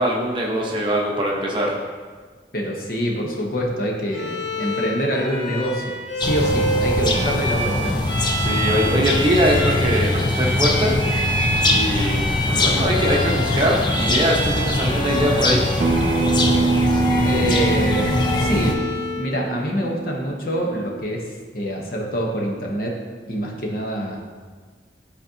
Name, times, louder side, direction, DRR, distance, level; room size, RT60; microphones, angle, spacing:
voice 1, 0.0-1.7 8.4-11.0 11.7-15.7, equal, 25° right, -2 dB, 0.9 m, -22 dB
voice 2, 2.5-7.9 17.2-18.8 19.1-21.2 21.5-22.9 23.3-24.2, equal, 50° left, 0 dB, 0.9 m, -25 dB
Bowed string instrument, 4.1-19.3, equal, 80° left, 1.4 m, -28 dB
sound 1, 6.2-18.7, left 2 dB, 25° left, 0.5 m, -22 dB
Acoustic guitar, 15.8-21.0, right 3 dB, 45° right, 0.4 m, -24 dB
10.5 x 4.2 x 2.8 m, 1.5 s
head